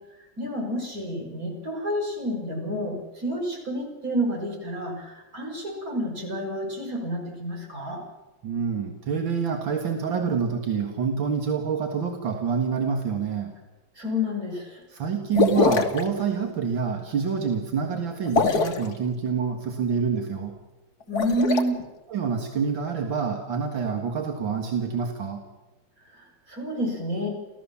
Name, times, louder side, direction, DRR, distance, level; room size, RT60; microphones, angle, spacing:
voice 1, 0.4-8.0 14.0-14.8 21.1-21.8 26.1-27.3, equal, 45° right, 1 dB, 6.0 m, -29 dB
voice 2, 8.4-13.6 14.9-20.6 22.1-25.4, right 6 dB, 85° right, 3 dB, 2.6 m, -27 dB
sound 1, 15.3-16.0 18.2-18.9 21.0-21.6, left 4 dB, 55° left, 2.1 m, -22 dB
29.5 x 14.5 x 7.2 m, 1.1 s
omnidirectional pair, 2.0 m